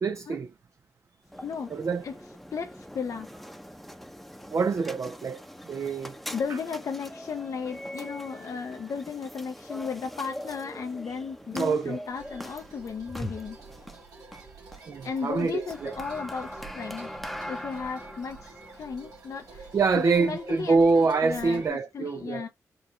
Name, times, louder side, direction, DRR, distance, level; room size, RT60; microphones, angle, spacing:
voice 1, 0.0-0.5 1.7-2.0 4.5-6.2 11.5-12.0 14.9-16.0 19.7-22.5, right 4 dB, 50° right, 0.4 m, -25 dB
sound 1, 1.2-20.3, equal, ahead, 0.7 m, -42 dB
voice 2, 1.4-1.7 2.0-2.1 2.5-3.3 6.3-13.6 15.0-17.1 17.5-22.5, left 5 dB, 60° left, 0.6 m, -35 dB
sound 2, 12.1-21.7, right 3 dB, 80° right, 2.3 m, -47 dB
4.6 x 2.3 x 3.1 m
supercardioid pair, 50°, 6 cm